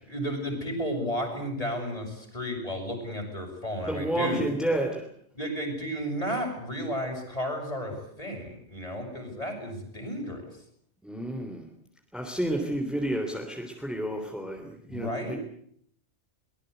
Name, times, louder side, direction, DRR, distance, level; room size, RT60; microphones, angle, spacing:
voice 1, 0.1-4.4 5.3-10.4 14.9-15.3, equal, 35° left, 1 dB, 6.7 m, -33 dB
voice 2, 3.9-5.0 11.0-11.7 12.1-15.4, right 1 dB, ahead, 2 dB, 3.3 m, -30 dB
23.0 x 20.0 x 8.0 m, 0.66 s
omnidirectional pair, 1.1 m